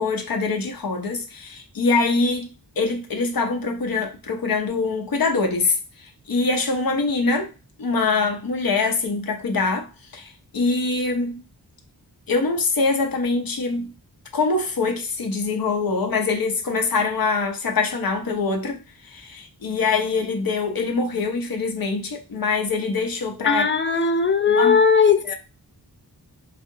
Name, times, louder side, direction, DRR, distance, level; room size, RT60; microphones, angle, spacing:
voice 1, 0.0-7.5 7.8-9.9 10.1-11.4 12.3-13.9 14.3-23.7 24.4-24.8 25.3-25.4, left 4 dB, 55° left, 0.7 m, -24 dB
voice 2, 23.5-25.3, left 5 dB, 30° left, 0.4 m, -18 dB
2.7 x 2.4 x 2.6 m
wide cardioid pair, 70°, 41 cm